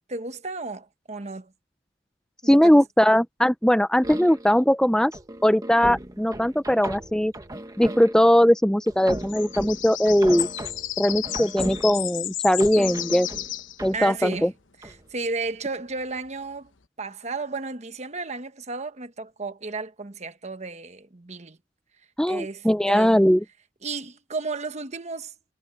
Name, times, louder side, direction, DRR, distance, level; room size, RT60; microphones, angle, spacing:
voice 1, 0.1-1.5 2.4-2.8 13.9-14.5 14.8-16.7 17.0-21.6 22.3-23.2 23.8-25.3, right 3 dB, 35° right, 1.2 m, -33 dB
voice 2, 2.4-5.1 5.4-7.3 7.8-10.5 11.0-13.3 13.8-14.5 22.2-23.4, equal, 5° left, 0.6 m, -20 dB
sound 1, 4.0-4.6 5.1-8.4 8.9-12.2 12.6-14.5 14.8-15.0, right 1 dB, 20° right, 1.4 m, -36 dB
sound 2, 9.0-13.8, left 13 dB, 80° left, 1.0 m, -33 dB
head